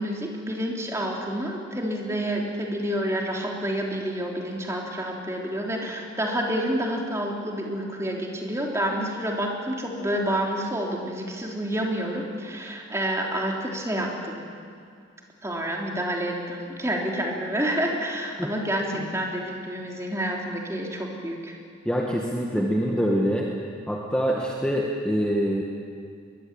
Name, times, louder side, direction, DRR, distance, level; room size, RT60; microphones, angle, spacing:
voice 1, 0.0-14.5 15.4-21.6 22.6-22.7, right 1 dB, 15° right, -1 dB, 3.1 m, -29 dB
voice 2, 21.9-23.5 23.9-25.6, equal, 5° left, -2 dB, 1.8 m, -25 dB
22.5 x 22.0 x 8.9 m, 2.3 s
head